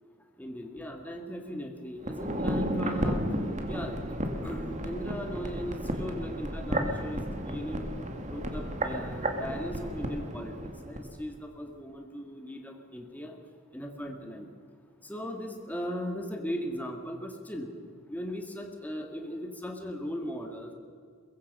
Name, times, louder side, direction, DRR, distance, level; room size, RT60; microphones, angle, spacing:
voice 1, 0.4-3.3 3.7-4.0 4.4-7.8 8.3-13.4 13.7-14.5 15.0-17.7 18.1-20.7, equal, 10° left, 3 dB, 2.1 m, -38 dB
sound 1, 2.0-11.1 11.3-11.4, right 1 dB, 35° right, 2.2 m, -33 dB
23.0 x 22.0 x 5.5 m, 2.1 s
head